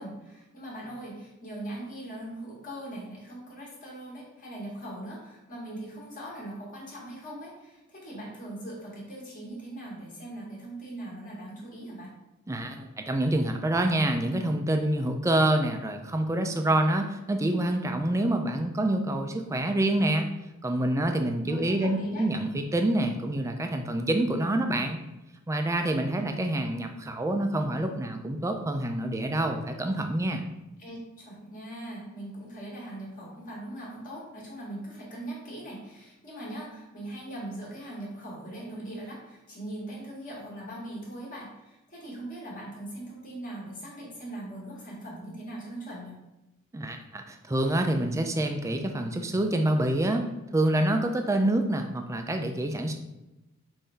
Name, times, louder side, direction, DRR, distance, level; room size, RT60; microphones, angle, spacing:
voice 1, 0.0-12.1 21.5-22.3 30.8-46.2, right 1 dB, 40° left, -5 dB, 1.5 m, -40 dB
voice 2, 12.5-20.3 20.6-25.0 25.5-30.4 46.7-52.9, right 1 dB, 15° right, 5 dB, 0.4 m, -27 dB
5.5 x 2.6 x 3.4 m, 0.98 s
head